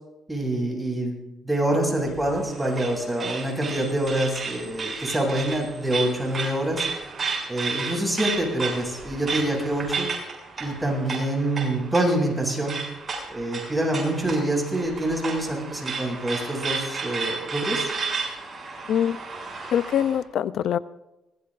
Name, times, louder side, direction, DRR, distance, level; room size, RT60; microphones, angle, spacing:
voice 1, 0.3-6.9 7.5-10.1 10.6-12.8 13.3-17.9, right 1 dB, 10° right, 0 dB, 7.9 m, -26 dB
sound 1, 2.0-20.2, right 4 dB, 40° right, 7.5 m, -33 dB
voice 2, 18.9-19.2 19.7-20.8, left 9 dB, 70° left, 15 dB, 0.6 m, -23 dB
23.5 x 19.5 x 2.6 m, 0.98 s
cardioid pair, 90°, 0 cm